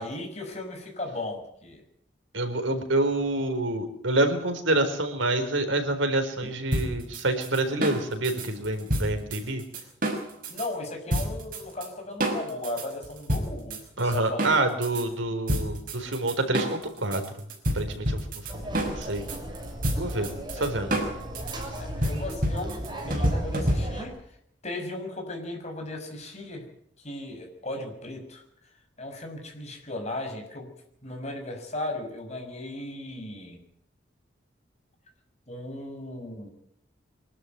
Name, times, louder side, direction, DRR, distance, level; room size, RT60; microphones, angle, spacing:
voice 1, 0.0-1.8 6.4-6.5 10.5-14.5 20.5-20.6 21.8-22.8 23.1-24.1 24.6-26.6 27.0-28.4 29.0-30.7 31.0-33.6 35.5-36.5, left 2 dB, 35° left, 3 dB, 6.5 m, -36 dB
voice 2, 2.3-9.6 14.0-17.2 17.7-18.2 18.5-19.3 20.0-21.0, right 2 dB, 90° right, 6 dB, 4.3 m, -27 dB
sound 1, 6.7-10.7 11.1-11.9 12.2-15.1 15.5-24.2, right 1 dB, 45° right, 5.9 m, -29 dB
sound 2, 18.5-24.0, right 1 dB, 25° right, 6.6 m, -37 dB
24.5 x 12.5 x 9.4 m, 0.70 s
head